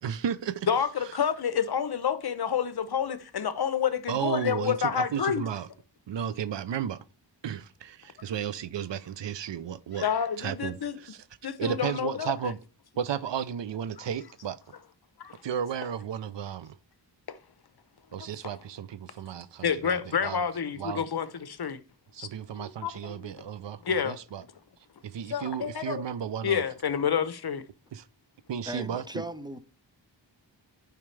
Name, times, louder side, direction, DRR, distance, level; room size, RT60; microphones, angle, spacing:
voice 1, 0.0-0.7 1.0-1.1 4.1-5.7 6.1-7.0 7.4-10.1 10.4-11.2 11.6-12.6 13.0-14.6 15.4-16.8 18.1-20.4 20.8-21.1 22.1-24.4 25.0-26.6 27.9-28.1 28.5-29.2, right 8 dB, 70° right, 0.6 m, -34 dB
voice 2, 0.7-5.4 10.0-11.0 11.4-12.3 15.2-15.4 17.3-17.4 19.6-21.8 22.2-22.3 22.6-23.3 23.8-24.2 25.3-26.0 26.4-27.6, left 7 dB, 55° left, 0.8 m, -29 dB
voice 3, 28.6-29.6, right 1 dB, 10° right, 0.5 m, -37 dB
11.0 x 5.0 x 3.2 m
wide cardioid pair, 80°, 45 cm